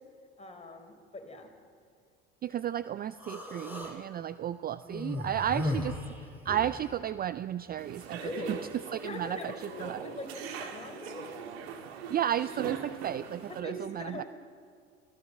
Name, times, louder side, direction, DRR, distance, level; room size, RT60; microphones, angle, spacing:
voice 1, 0.4-1.5 5.4-5.6 8.2-8.6 9.0-11.5 13.5-14.3, left 2 dB, 20° left, 2 dB, 4.3 m, -42 dB
voice 2, 2.4-6.0 6.5-8.2 8.5-8.6 8.9-9.5 9.8-10.0 12.1-14.2, right 10 dB, 30° right, 15 dB, 0.4 m, -33 dB
Human voice, 3.2-3.9 4.8-6.8, left 1 dB, 5° right, 6.0 m, -35 dB
sound 1, 7.8-13.6, right 6 dB, 75° right, 2.0 m, -42 dB
25.0 x 15.0 x 7.6 m, 2.1 s
hypercardioid pair, 70°, 32 cm